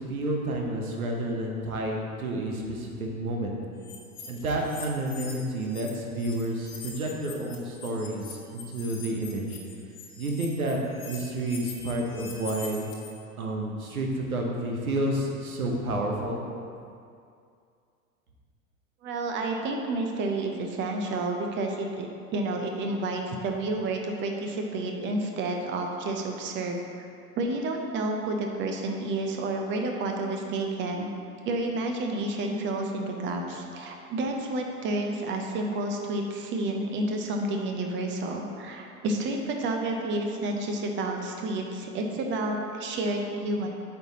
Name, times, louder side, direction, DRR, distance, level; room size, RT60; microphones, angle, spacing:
voice 1, 0.0-3.5 4.3-9.6 10.2-10.8 11.0-12.8 13.4-16.4, right 1 dB, 70° right, 0 dB, 1.1 m, -30 dB
sound 1, 3.8-5.9 6.2-13.1, left 6 dB, 40° left, 1.2 m, -43 dB
voice 2, 19.0-27.1 27.4-31.1 31.4-43.7, right 2 dB, 25° right, 3 dB, 0.7 m, -30 dB
7.9 x 4.3 x 4.1 m, 2.4 s
figure-of-eight pair, 85°, 44 cm